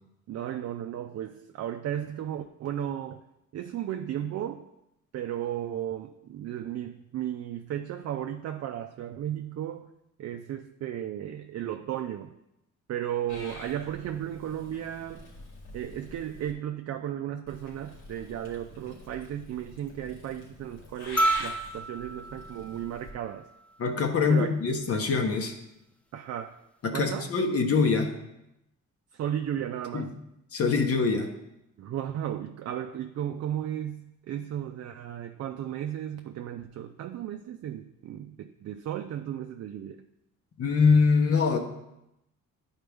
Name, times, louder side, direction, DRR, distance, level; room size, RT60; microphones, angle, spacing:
voice 1, 0.3-3.2 3.5-4.7 5.1-9.9 10.2-12.3 12.9-15.3 15.7-23.5 24.3-24.6 26.1-26.6 26.9-27.3 29.1-30.1 31.8-40.0, right 10 dB, 55° right, 6 dB, 0.5 m, -35 dB
Purr / Meow, 13.3-16.5 17.5-23.1, left 1 dB, 80° left, 2.1 m, -45 dB
sound 1, 21.2-23.7 25.3-25.4, right 2 dB, 5° left, 0.4 m, -31 dB
voice 2, 23.8-25.5 26.8-28.2 29.9-30.1 30.5-31.3 40.6-41.6, left 5 dB, 50° left, 5 dB, 1.1 m, -24 dB
11.0 x 4.4 x 3.5 m, 0.86 s
cardioid pair, 90°, 30 cm